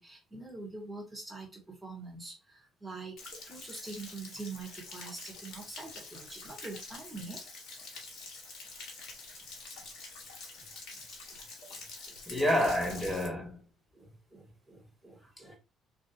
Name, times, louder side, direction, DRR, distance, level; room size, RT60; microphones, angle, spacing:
voice 1, 0.0-7.4 10.9-11.0 11.7-11.8 12.1-12.2 13.9-15.6, right 3 dB, 20° right, 1.9 m, -45 dB
Stream / Splash splatter / Trickle dribble, 3.2-13.3, left 3 dB, 55° left, 1.0 m, -46 dB
voice 2, 12.3-13.6 15.4-15.6, left 1 dB, 5° left, 1.8 m, -29 dB
3.3 x 3.0 x 3.0 m
figure-of-eight pair, 50°, 0 cm